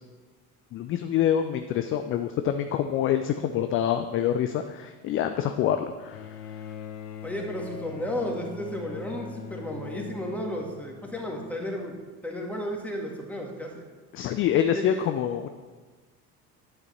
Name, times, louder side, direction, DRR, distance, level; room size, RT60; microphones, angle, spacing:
voice 1, 0.7-6.4 14.1-15.5, left 10 dB, 30° left, 8 dB, 0.4 m, -26 dB
Bowed string instrument, 6.1-11.6 12.7-12.8, left 6 dB, 80° left, 0.8 m, -41 dB
voice 2, 7.2-11.9 12.2-13.9 14.7-15.0, left 1 dB, 5° left, 0 dB, 1.9 m, -33 dB
9.3 x 8.1 x 4.3 m, 1.4 s
figure-of-eight pair, 65°, 46 cm